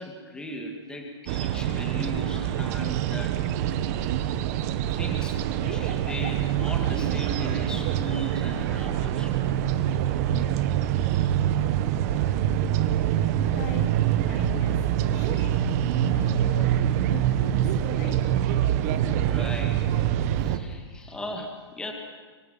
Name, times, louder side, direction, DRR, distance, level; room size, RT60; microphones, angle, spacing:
voice 1, 0.0-3.4 5.0-9.5 19.2-19.9 20.4-21.9, equal, 5° left, 2.4 m, -37 dB
sound 1, 1.3-20.6, right 11 dB, 35° right, 1.3 m, -25 dB
voice 2, 13.5-15.9 16.2-18.3, left 8 dB, 40° left, 2.3 m, -42 dB
25.0 x 23.5 x 5.7 m
hypercardioid pair, 160°, 15 cm